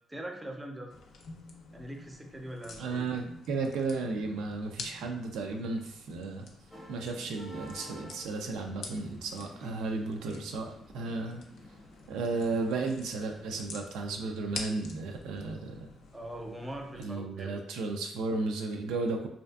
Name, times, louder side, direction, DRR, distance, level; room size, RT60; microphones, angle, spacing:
voice 1, 0.1-0.9 1.7-3.1 16.1-17.6, right 1 dB, 15° right, 2 dB, 0.4 m, -42 dB
sound 1, 0.9-17.1, left 4 dB, 75° left, 0.4 m, -48 dB
voice 2, 2.8-6.5 6.9-11.4 12.1-15.9 17.0-19.3, right 3 dB, 90° right, 3 dB, 0.3 m, -34 dB
sound 2, 6.7-13.7, equal, 20° left, 0.7 m, -51 dB
2.5 x 2.3 x 2.2 m, 0.70 s
cardioid pair, 90°, 0 cm